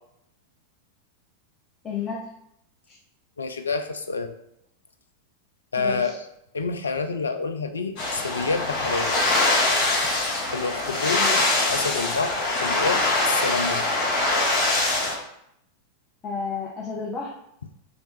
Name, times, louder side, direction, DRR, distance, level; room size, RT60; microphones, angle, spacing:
voice 1, 1.8-2.3 2.9-3.0 5.8-6.1 11.1-11.5 16.2-17.3, left 5 dB, 25° left, -4 dB, 0.8 m, -32 dB
voice 2, 3.4-4.3 5.7-6.2 6.5-9.2 10.5-11.2 11.7-13.9, left 4 dB, 75° left, 7 dB, 0.4 m, -28 dB
sound 1, 8.0-15.1, left 2 dB, 45° left, 1.6 m, -23 dB
3.3 x 2.9 x 4.4 m, 0.76 s
figure-of-eight pair, 90°, 0 cm